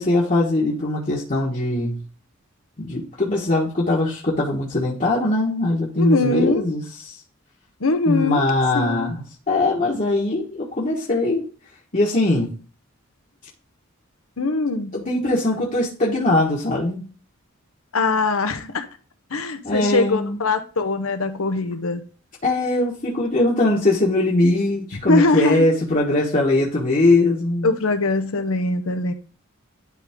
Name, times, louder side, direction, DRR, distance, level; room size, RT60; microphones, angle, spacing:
voice 1, 0.0-2.0 2.8-7.2 8.1-11.4 11.9-12.5 14.9-17.0 19.6-20.4 22.4-27.7, left 2 dB, 40° left, 1.3 m, -21 dB
voice 2, 6.0-6.7 7.8-8.5 8.7-9.1 14.4-15.0 17.9-18.9 19.3-22.0 24.9-25.7 27.6-29.1, left 3 dB, 85° left, 0.9 m, -22 dB
11.0 x 3.9 x 3.5 m
head